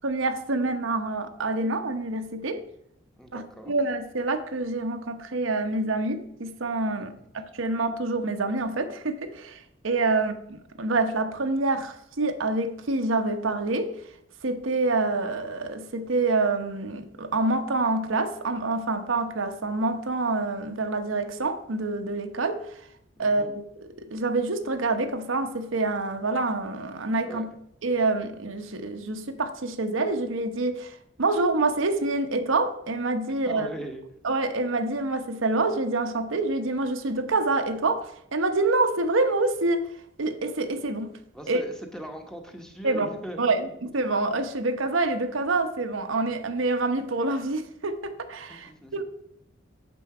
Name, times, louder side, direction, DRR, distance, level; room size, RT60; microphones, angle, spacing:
voice 1, 0.0-2.6 3.3-13.9 14.4-22.8 23.2-27.5 27.8-33.7 34.2-39.9 40.2-41.1 41.5-41.6 42.8-43.1 43.4-49.0, right 2 dB, 80° right, 0.9 m, -27 dB
voice 2, 3.2-3.7 6.9-7.3 10.1-10.2 23.2-23.5 27.2-27.5 33.4-34.0 41.3-43.4 48.5-49.0, right 1 dB, 5° left, 1.0 m, -40 dB
8.9 x 7.0 x 4.8 m
head